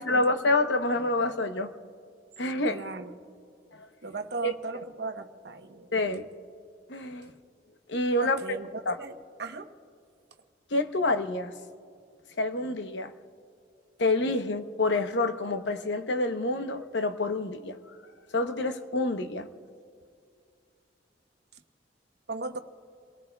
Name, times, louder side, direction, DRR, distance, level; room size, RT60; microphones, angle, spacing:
voice 1, 0.0-1.7 2.4-2.8 3.7-3.9 4.4-4.5 5.9-6.2 6.9-7.3 7.9-8.4 8.9-9.0 10.7-11.5 12.4-13.1 14.0-17.8 18.3-19.5, left 2 dB, 80° left, 0.9 m, -27 dB
voice 2, 2.7-3.1 4.0-5.9 8.2-9.7 22.3-22.6, right 3 dB, 65° right, 1.0 m, -37 dB
30.0 x 18.5 x 2.3 m
head